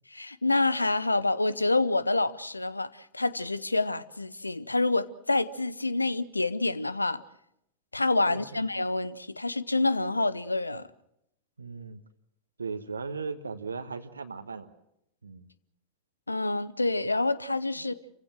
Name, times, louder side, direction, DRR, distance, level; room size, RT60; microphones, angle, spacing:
voice 1, 0.1-7.2 7.9-10.8 16.3-17.9, left 2 dB, 80° left, 0.8 m, -27 dB
voice 2, 8.3-8.6 11.6-12.0 12.6-14.7 15.2-15.5 17.8-17.9, right 4 dB, 75° right, 1.3 m, -37 dB
28.5 x 16.0 x 7.6 m
figure-of-eight pair, 90°, 0 cm